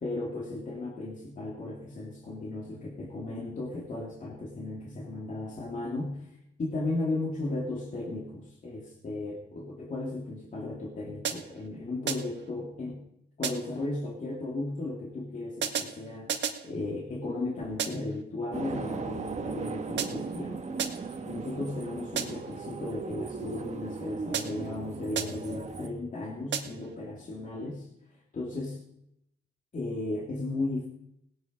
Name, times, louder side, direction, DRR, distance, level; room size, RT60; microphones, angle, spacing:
voice 1, 0.0-13.0 13.4-16.3 16.6-28.8 29.7-30.9, left 2 dB, 40° left, -2 dB, 2.8 m, -35 dB
sound 1, 11.2-11.7 12.1-12.5 13.4-13.9 15.6-16.7 17.8-18.2 20.0-20.4 20.8-21.2 22.2-22.6 24.3-24.8 25.2-25.6 26.5-26.9, right 8 dB, 65° right, 1.7 m, -34 dB
sound 2, 18.5-25.9, right 4 dB, 35° right, 1.7 m, -37 dB
17.5 x 9.6 x 5.4 m, 0.79 s
cardioid pair, 90°, 20 cm